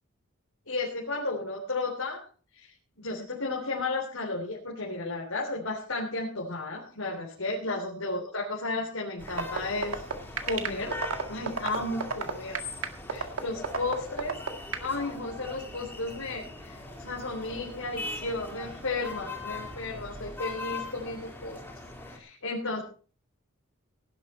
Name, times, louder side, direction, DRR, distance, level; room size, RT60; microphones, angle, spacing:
voice 1, 0.7-2.2 2.5-10.0 10.4-11.0 11.3-12.5 13.1-21.6 22.1-22.8, left 2 dB, 90° left, -2 dB, 3.4 m, -33 dB
sound 1, 9.2-22.2, left 3 dB, 10° left, 3.6 m, -41 dB
sound 2, 9.3-14.9, right 5 dB, 80° right, 1.9 m, -30 dB
17.5 x 11.0 x 4.4 m, 0.43 s
head